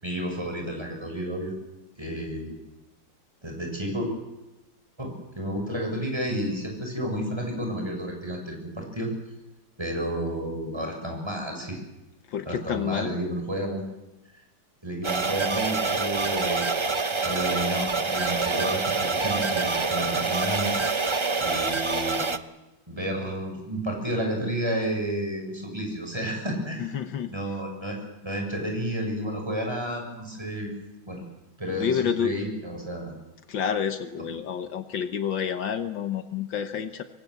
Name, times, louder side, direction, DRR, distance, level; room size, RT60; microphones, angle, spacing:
voice 1, 0.0-1.5 2.0-2.5 3.4-4.1 5.0-9.1 9.8-11.8 12.5-13.8 14.8-16.7 17.2-20.7 21.4-22.3 22.9-27.0 27.3-28.0 28.2-30.7 31.1-31.2 31.6-33.1, right 1 dB, 15° right, 1 dB, 7.0 m, -31 dB
voice 2, 12.3-13.2 26.8-27.3 31.8-32.4 33.5-37.0, left 8 dB, 75° left, 9 dB, 1.9 m, -29 dB
Digital Data Beeps, 15.0-22.4, right 4 dB, 40° right, 0.4 m, -26 dB
25.0 x 24.0 x 8.1 m, 1.0 s
omnidirectional pair, 2.1 m